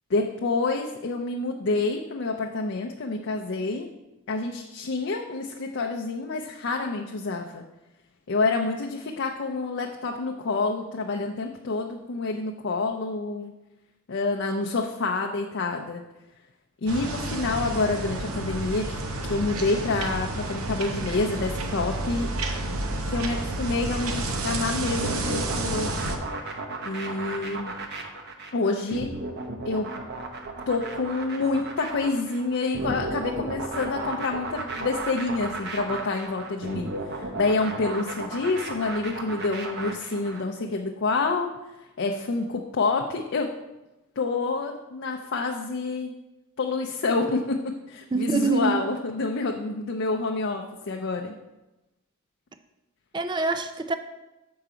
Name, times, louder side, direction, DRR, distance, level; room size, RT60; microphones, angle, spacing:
voice 1, 0.1-3.9 4.3-7.6 8.3-13.5 14.1-16.0 16.8-22.3 23.1-25.9 26.8-27.7 28.5-29.1 29.6-29.9 30.7-41.5 42.0-43.5 44.2-46.1 46.6-51.3, left 3 dB, 55° left, 2 dB, 0.5 m, -28 dB
sound 1, 16.9-26.2, right 2 dB, 85° right, 0.8 m, -30 dB
sound 2, 25.0-40.4, right 2 dB, 50° right, 0.8 m, -34 dB
voice 2, 48.1-48.7 53.1-54.0, right 4 dB, 20° right, 9 dB, 0.3 m, -25 dB
6.9 x 4.7 x 4.9 m, 1.0 s
head